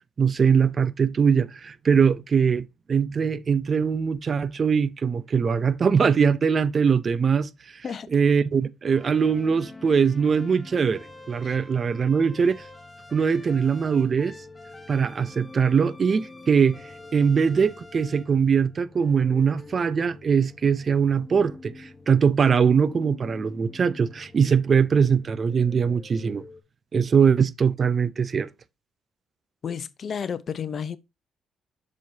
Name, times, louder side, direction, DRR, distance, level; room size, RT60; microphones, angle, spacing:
voice 1, 0.2-7.5 8.1-12.6 13.1-14.3 14.9-16.8 17.1-26.4 26.9-28.5, right 6 dB, 45° right, 0.6 m, -22 dB
sound 1, 8.9-26.6, left 3 dB, 15° left, 1.1 m, -46 dB
voice 2, 29.6-31.0, left 7 dB, 50° left, 0.8 m, -32 dB
7.4 x 6.4 x 2.7 m
cardioid pair, 90°, 0 cm